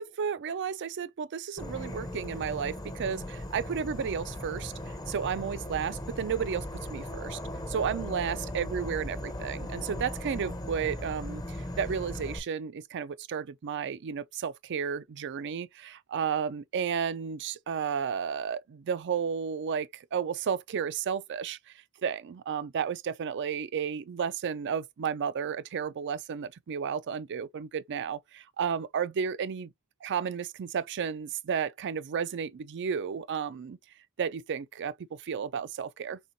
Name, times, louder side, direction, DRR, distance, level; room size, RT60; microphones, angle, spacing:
voice 1, 0.0-4.7 5.1-7.4 7.7-21.6 22.0-29.7 30.0-33.8 34.2-34.9 35.2-36.2, right 7 dB, 55° right, 0.4 m, -32 dB
Insect / Frog, 1.6-12.4, left 1 dB, 20° left, 0.7 m, -38 dB
4.2 x 3.5 x 2.6 m
head